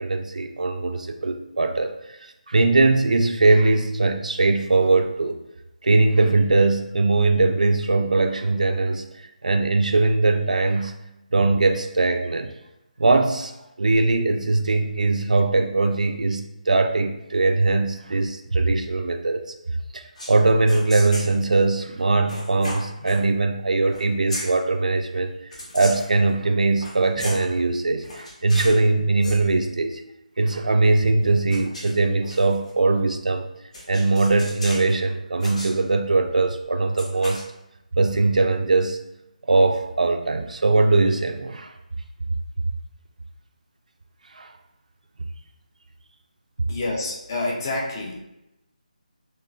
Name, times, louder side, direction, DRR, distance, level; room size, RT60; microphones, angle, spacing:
voice 1, 0.0-2.2 2.5-5.4 5.8-9.1 9.4-11.0 11.3-12.5 13.0-13.5 13.8-19.4 19.9-25.3 25.7-30.0 30.4-33.5 33.9-37.5 38.0-39.0 39.5-41.7 44.3-44.5, right 3 dB, 60° right, 6 dB, 0.4 m, -21 dB
sound 1, 20.2-20.4 20.7-21.3 22.3-23.2 23.9-24.0 24.3-24.5 25.5-26.1 26.7-27.5 28.0-28.8 29.1-29.4 31.2-32.7 33.7-34.9 35.4-35.7 37.0-37.4, left 1 dB, 55° left, 0.9 m, -35 dB
voice 2, 46.7-48.2, left 2 dB, 25° left, -2 dB, 0.5 m, -28 dB
3.2 x 2.8 x 2.6 m, 0.90 s
figure-of-eight pair, 155°, 4 cm